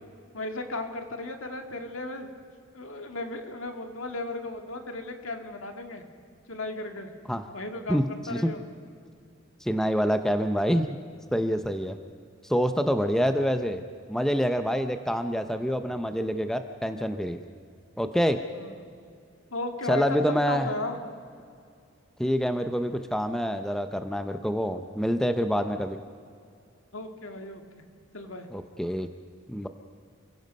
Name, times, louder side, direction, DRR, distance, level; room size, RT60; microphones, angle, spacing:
voice 1, 0.3-2.3 2.7-6.0 6.5-7.1 7.5-8.6 18.5-18.8 19.5-21.0 26.9-27.9 28.1-28.5, left 2 dB, 75° left, 5 dB, 2.0 m, -35 dB
voice 2, 7.9-8.5 9.6-10.9 11.3-12.0 12.4-13.8 14.1-17.4 18.0-18.4 19.9-20.7 22.2-26.0 28.5-29.1 29.5-29.7, equal, ahead, 7 dB, 0.6 m, -26 dB
29.0 x 16.5 x 5.4 m, 2.3 s
head